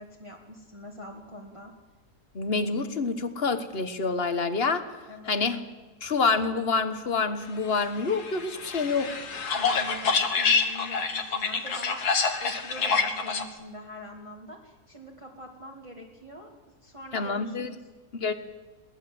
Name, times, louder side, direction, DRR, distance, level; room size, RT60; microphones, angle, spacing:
voice 1, 0.0-1.7 5.1-5.7 9.5-16.5 16.8-17.9, equal, 20° right, -2 dB, 2.1 m, -44 dB
voice 2, 2.3-4.8 5.3-5.6 6.0-9.1 17.1-17.7 18.1-18.3, left 4 dB, 40° left, 9 dB, 1.6 m, -27 dB
sound 1, 8.1-13.4, left 5 dB, 75° left, 2.1 m, -27 dB
22.5 x 18.0 x 7.8 m, 1.3 s
omnidirectional pair, 1.7 m